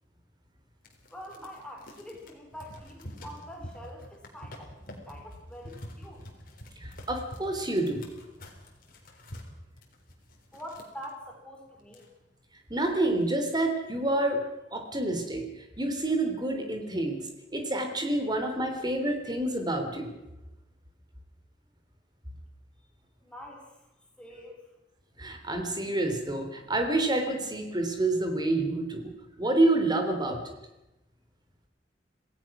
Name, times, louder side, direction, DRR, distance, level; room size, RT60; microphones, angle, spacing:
sound 1, 0.8-11.1 11.6-11.7 11.8-12.5 13.0-13.3, left 1 dB, 50° left, 4.1 m, -47 dB
voice 1, 1.1-4.7 5.0-6.2 10.5-12.1 23.2-23.9 24.2-24.6, equal, 5° left, 0 dB, 4.3 m, -45 dB
voice 2, 6.8-8.1 12.7-14.4 14.7-15.5 15.8-20.1 25.2-30.5, right 2 dB, 25° right, 5 dB, 3.4 m, -28 dB
26.5 x 17.5 x 6.1 m, 0.96 s
head